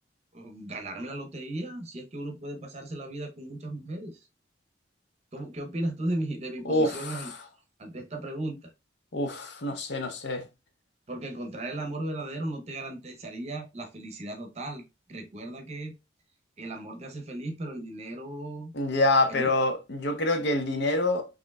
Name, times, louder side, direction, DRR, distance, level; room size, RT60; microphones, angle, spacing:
voice 1, 0.3-4.2 5.3-7.3 7.8-8.7 11.1-14.8 15.1-15.9 16.6-18.7 19.3-19.5, right 1 dB, 35° right, 0.7 m, -36 dB
voice 2, 6.6-7.3 9.1-10.5 18.7-21.3, left 2 dB, 60° left, 0.6 m, -26 dB
4.3 x 2.9 x 2.3 m
head